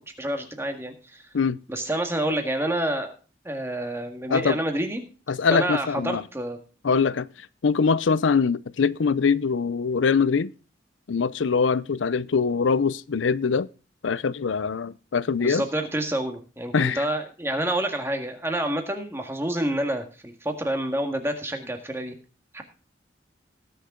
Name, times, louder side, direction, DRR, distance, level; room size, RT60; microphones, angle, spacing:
voice 1, 0.2-1.2 1.7-3.1 3.4-5.0 5.5-6.6 6.9-7.0 15.4-22.1 22.5-22.6, right 1 dB, 15° right, 1.7 m, -28 dB
voice 2, 5.3-6.2 6.8-7.3 7.6-10.5 11.1-13.7 14.0-15.6 16.7-17.0, left 5 dB, 90° left, 0.5 m, -23 dB
19.5 x 6.6 x 3.7 m
head